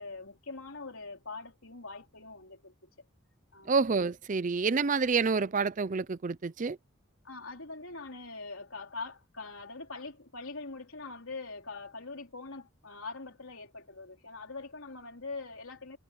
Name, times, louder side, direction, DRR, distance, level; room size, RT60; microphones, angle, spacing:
voice 1, 0.0-2.7 3.5-3.7 7.2-16.0, left 3 dB, 70° left, 3.8 m, -43 dB
voice 2, 3.7-6.8, right 4 dB, 35° right, 0.5 m, -28 dB
head